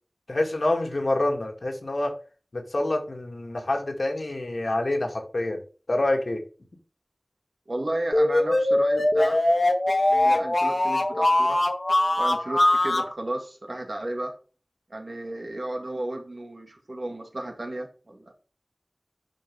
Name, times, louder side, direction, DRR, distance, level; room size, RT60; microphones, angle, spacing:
voice 1, 0.3-2.2 2.5-5.6 5.9-6.4, left 2 dB, 85° left, 2 dB, 2.3 m, -27 dB
voice 2, 7.7-9.6 10.1-11.7 12.2-14.3 14.9-18.3, right 1 dB, 70° right, 3 dB, 2.3 m, -33 dB
sound 1, 8.1-13.1, left 1 dB, 55° left, 1.6 m, -22 dB
11.5 x 5.3 x 3.6 m, 0.36 s
wide cardioid pair, 45°, 0 cm